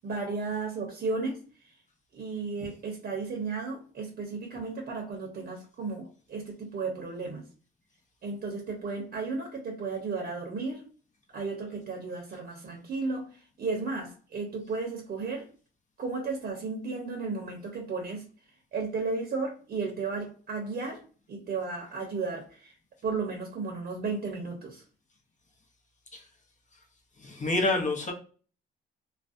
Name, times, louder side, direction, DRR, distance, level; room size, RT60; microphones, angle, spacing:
voice 1, 0.0-1.4 2.1-7.4 8.2-10.8 11.3-15.5 16.0-18.3 18.7-21.0 21.3-22.7 23.0-24.8, right 4 dB, 50° right, 1 dB, 0.7 m, -34 dB
voice 2, 27.2-28.1, left 2 dB, 40° left, 1 dB, 0.7 m, -27 dB
2.4 x 2.1 x 2.5 m, 0.39 s
cardioid pair, 90°, 20 cm